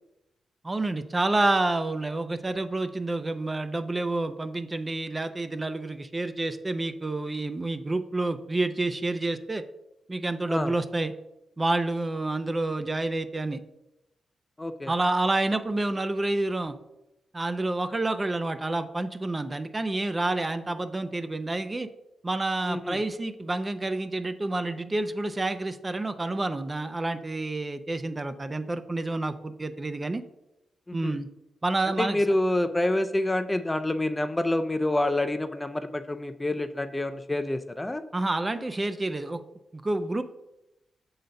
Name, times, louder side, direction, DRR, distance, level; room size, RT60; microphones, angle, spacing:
voice 1, 0.6-9.6 10.1-11.1 11.6-13.6 14.9-16.7 17.3-21.9 22.2-30.2 30.9-31.3 31.6-32.2 38.1-39.4 39.7-40.2, right 2 dB, 25° right, 10 dB, 0.6 m, -28 dB
voice 2, 14.6-14.9 22.6-23.0 30.9-31.1 32.0-38.0, left 1 dB, 20° left, 10 dB, 0.5 m, -27 dB
6.6 x 3.9 x 5.2 m, 0.89 s
supercardioid pair, 55°, 0 cm